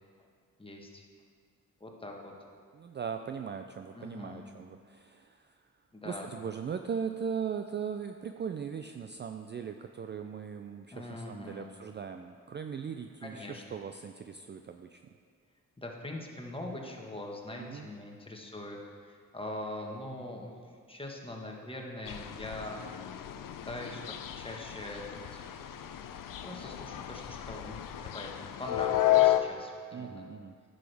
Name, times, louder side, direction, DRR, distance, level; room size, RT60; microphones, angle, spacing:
voice 1, 0.6-1.0 1.8-2.3 3.9-4.4 5.9-6.3 10.9-11.7 13.2-13.8 15.8-18.8 19.0-20.5 20.9-22.8 23.6-25.4 26.4-27.8 28.1-30.3, left 1 dB, 15° left, 0 dB, 1.4 m, -42 dB
voice 2, 2.7-5.6 6.0-15.0 17.6-17.9 29.9-30.5, right 7 dB, 30° right, 6 dB, 0.4 m, -39 dB
sound 1, 22.1-29.4, left 14 dB, 70° left, 0.6 m, -32 dB
10.5 x 6.4 x 3.4 m, 2.1 s
cardioid pair, 65°, 35 cm